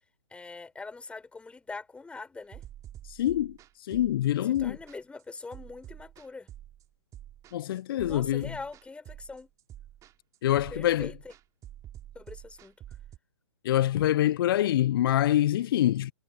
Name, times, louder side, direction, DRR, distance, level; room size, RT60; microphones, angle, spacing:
voice 1, 0.3-2.6 4.4-6.5 8.0-9.5 10.7-11.3 12.1-12.8, left 3 dB, 5° left, 5.5 m, -43 dB
sound 1, 2.5-13.2, right 12 dB, 20° right, 2.9 m, -47 dB
voice 2, 3.1-4.8 7.5-8.5 10.4-11.1 13.6-16.1, left 12 dB, 50° left, 0.5 m, -25 dB
figure-of-eight pair, 125°, 16 cm